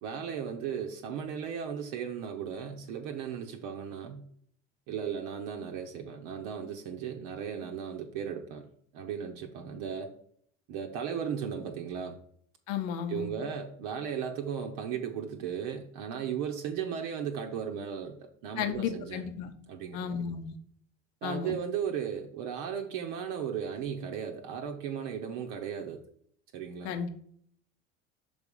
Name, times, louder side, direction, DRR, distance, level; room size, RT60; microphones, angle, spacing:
voice 1, 0.0-4.2 4.9-8.7 8.9-10.1 10.7-12.2 13.1-19.3 19.7-20.2 21.2-26.0 26.5-27.0, right 7 dB, 60° right, 0.8 m, -36 dB
voice 2, 12.7-13.3 18.6-19.5 19.9-20.5 21.2-21.5 26.8-27.1, left 7 dB, 60° left, 0.9 m, -33 dB
6.1 x 3.5 x 5.3 m
hypercardioid pair, 70°, 38 cm